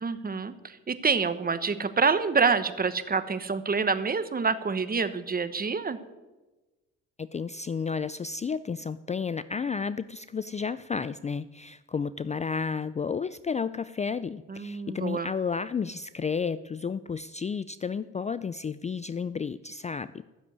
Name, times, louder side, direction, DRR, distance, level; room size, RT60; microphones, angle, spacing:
voice 1, 0.0-6.0 14.5-15.3, right 5 dB, 30° right, 11 dB, 1.2 m, -27 dB
voice 2, 7.2-20.2, left 5 dB, 25° left, 15 dB, 0.4 m, -32 dB
14.5 x 7.2 x 9.6 m, 1.2 s
cardioid pair, 90°, 30 cm